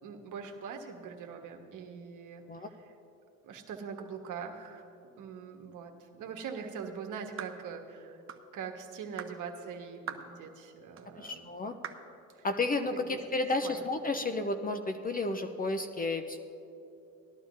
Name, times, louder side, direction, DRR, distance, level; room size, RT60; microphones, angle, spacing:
voice 1, 0.0-2.9 3.4-4.9 5.2-8.2 8.5-11.5 12.3-12.5 12.9-13.2 13.6-13.8, right 6 dB, 50° right, 3 dB, 1.5 m, -42 dB
sound 1, 7.4-7.6 8.3-8.5 9.2-9.4 10.1-10.3 11.0-11.1 11.8-12.1, right 8 dB, 30° right, 0.9 m, -41 dB
voice 2, 11.2-11.7 12.4-16.4, left 2 dB, 20° left, 7 dB, 0.6 m, -32 dB
18.5 x 11.5 x 2.7 m, 2.8 s
hypercardioid pair, 75°, 40 cm